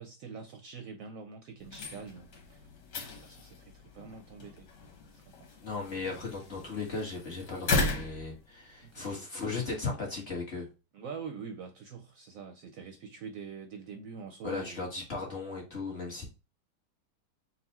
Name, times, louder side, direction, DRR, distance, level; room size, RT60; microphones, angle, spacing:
voice 1, 0.0-2.7 3.0-4.7 5.1-5.3 8.8-9.1 10.9-14.9, right 5 dB, 70° right, 0.9 m, -45 dB
sound 1, 1.6-9.1, left 2 dB, 80° left, 1.7 m, -37 dB
voice 2, 5.6-10.7 14.4-16.2, left 4 dB, 40° left, 1.5 m, -36 dB
4.1 x 2.3 x 4.0 m
omnidirectional pair, 1.8 m